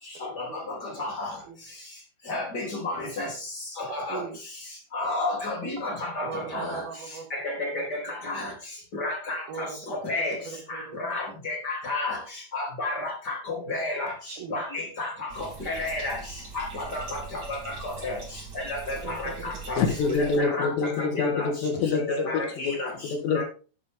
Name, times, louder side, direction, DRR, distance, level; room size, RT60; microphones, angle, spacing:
voice 1, 2.3-3.3 3.9-4.2 4.9-6.2 6.5-6.8 7.6-8.0 8.3-8.5 8.9-9.4 9.9-10.3 11.0-12.2 12.5-13.1 13.5-14.1 14.5-15.1 15.4-16.2 16.5-17.0 18.0-18.1 18.7-19.1 19.4-19.8 20.2-20.7 21.1-21.5 21.9-22.9, left 2 dB, 25° left, -1 dB, 3.4 m, -31 dB
voice 2, 4.1-4.4 6.2-7.3 7.6-7.9 9.5-9.8 10.2-11.2 14.3-14.6 19.0-19.7 20.3-20.7 21.6-21.9 22.6-22.9, right 6 dB, 70° right, 5 dB, 3.0 m, -40 dB
Bathtub (filling or washing), 15.3-20.4, right 4 dB, 30° right, 2.7 m, -42 dB
voice 3, 19.8-22.7 23.0-23.4, left 4 dB, 80° left, 6 dB, 3.7 m, -26 dB
12.0 x 7.2 x 3.7 m, 0.35 s
omnidirectional pair, 5.0 m